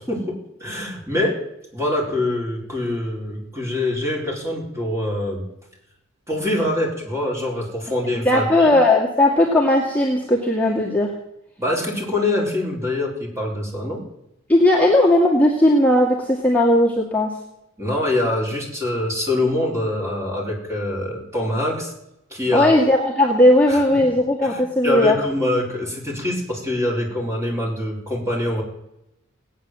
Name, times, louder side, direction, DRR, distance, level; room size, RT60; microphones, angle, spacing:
voice 1, 0.0-1.4 1.7-5.4 6.3-8.7 11.6-14.0 17.8-21.9 22.3-22.7 23.7-23.8 24.5-28.6, left 1 dB, 15° right, -1 dB, 4.4 m, -24 dB
voice 2, 8.3-11.1 14.5-17.3 22.5-25.2, left 1 dB, 10° left, -5 dB, 2.1 m, -17 dB
18.0 x 9.5 x 7.6 m, 0.86 s
head